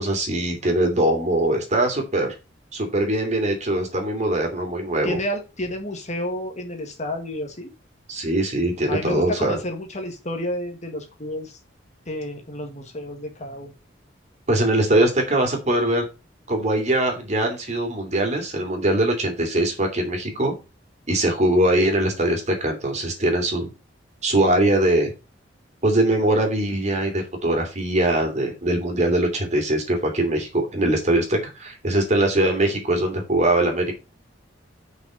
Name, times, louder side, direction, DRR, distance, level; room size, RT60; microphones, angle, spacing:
voice 1, 0.0-2.3 2.7-5.2 8.1-9.6 14.5-16.0 16.5-20.5 21.1-23.7 24.2-25.1 25.8-33.9, right 1 dB, 40° right, 3 dB, 2.9 m, -22 dB
voice 2, 5.0-7.7 8.9-11.6 12.1-13.7, left 1 dB, 40° left, 4 dB, 1.8 m, -30 dB
6.0 x 5.7 x 6.4 m, 0.29 s
head